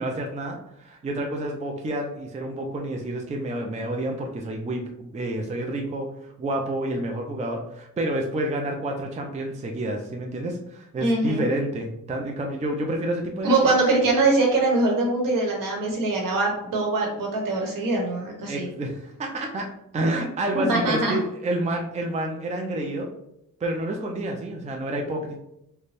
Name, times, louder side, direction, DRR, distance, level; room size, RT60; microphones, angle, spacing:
voice 1, 0.0-6.1 6.4-13.7 18.5-19.7 19.9-23.1 23.6-25.4, right 1 dB, 20° right, 2 dB, 0.4 m, -29 dB
voice 2, 11.0-11.5 13.4-18.7 20.5-21.2, right 2 dB, 70° right, 0 dB, 1.3 m, -23 dB
4.1 x 2.2 x 3.3 m, 0.82 s
cardioid pair, 125°, 35 cm